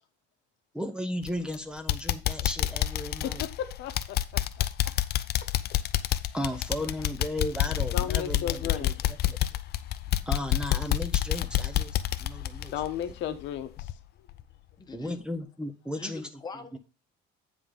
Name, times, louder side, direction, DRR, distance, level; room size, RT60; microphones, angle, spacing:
voice 1, 0.7-3.5 6.3-9.0 9.3-9.4 10.3-12.7 13.3-13.4 14.9-16.3 16.7-16.8, left 1 dB, 5° right, 0.8 m, -35 dB
sound 1, 1.2-1.5 1.9-13.5 13.8-13.9 14.4-14.5, left 13 dB, 55° left, 0.6 m, -28 dB
voice 2, 3.4-4.9 7.9-8.9 12.7-13.9, left 10 dB, 70° left, 1.1 m, -35 dB
voice 3, 14.8-15.2 15.9-16.8, left 4 dB, 20° left, 1.2 m, -42 dB
9.4 x 3.7 x 5.2 m
cardioid pair, 130°, 20 cm